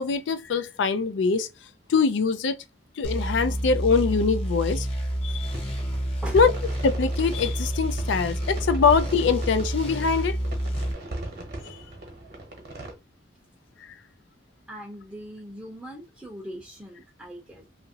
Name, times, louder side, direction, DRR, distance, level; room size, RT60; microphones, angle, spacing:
voice 1, 0.0-1.5 1.9-2.6 3.0-4.9 5.2-5.5 6.3-6.5 6.8-10.4 11.6-11.8, left 5 dB, 75° left, 0.4 m, -23 dB
sound 1, 3.0-10.9, right 1 dB, 30° left, 0.8 m, -29 dB
sound 2, 5.5-12.9, right 1 dB, 55° right, 0.9 m, -39 dB
voice 2, 14.7-17.7, equal, 5° right, 0.6 m, -39 dB
2.9 x 2.5 x 2.7 m
head